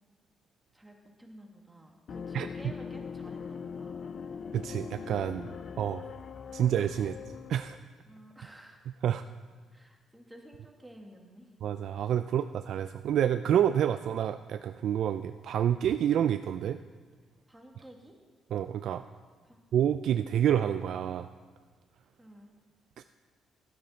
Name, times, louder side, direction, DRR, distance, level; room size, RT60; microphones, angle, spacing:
voice 1, 0.7-4.1 7.0-7.2 8.1-8.9 9.7-11.5 12.3-12.4 17.5-18.2 19.4-19.6 22.2-22.5, equal, 10° right, 1 dB, 2.0 m, -52 dB
sound 1, 2.1-7.8, left 6 dB, 50° left, 0.6 m, -41 dB
voice 2, 4.5-5.5 5.8-6.1 6.5-7.1 7.5-7.8 9.0-9.2 11.6-16.8 18.5-19.0 19.7-21.3 23.0-23.1, right 10 dB, 70° right, 9 dB, 0.4 m, -28 dB
15.5 x 12.0 x 4.4 m, 1.5 s
cardioid pair, 90°, 0 cm